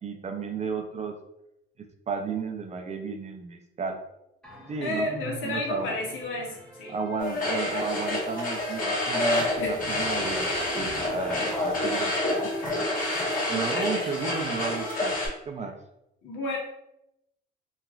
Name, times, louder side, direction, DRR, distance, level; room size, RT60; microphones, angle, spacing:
voice 1, 0.0-1.2 1.8-4.0 4.7-6.0 6.9-12.8 13.5-15.2 15.5-15.7, right 5 dB, 35° right, 4 dB, 0.4 m, -33 dB
sound 1, 4.4-13.1, equal, 5° left, 0.6 m, -43 dB
voice 2, 4.8-6.9 9.6-9.8 13.5-13.9 16.2-16.6, left 2 dB, 80° left, 0 dB, 0.8 m, -32 dB
sound 2, 7.2-15.3, left 1 dB, 45° left, 1.4 m, -28 dB
3.0 x 2.4 x 2.3 m, 0.84 s
cardioid pair, 90°, 20 cm